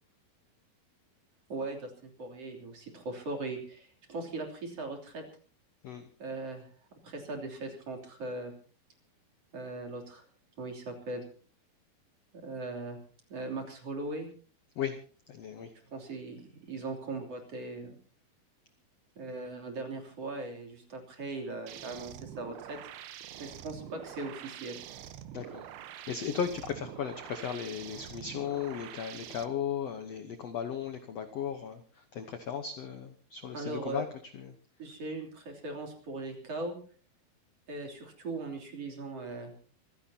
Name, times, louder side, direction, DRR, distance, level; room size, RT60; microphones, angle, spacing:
voice 1, 1.5-5.2 6.2-6.7 7.0-8.5 9.5-10.2 10.6-11.2 12.3-13.0 13.3-14.3 15.9-18.0 19.2-22.8 23.4-24.8 33.5-34.1 34.8-36.8 37.7-39.5, right 2 dB, 40° right, 2 dB, 4.0 m, -39 dB
voice 2, 15.3-15.7 25.3-25.6 26.1-31.8 32.1-34.1 34.3-34.5, left 8 dB, 65° left, 8 dB, 1.6 m, -36 dB
sound 1, 21.7-29.5, right 11 dB, 90° right, 3.1 m, -46 dB
25.5 x 16.0 x 2.9 m, 0.41 s
omnidirectional pair, 4.3 m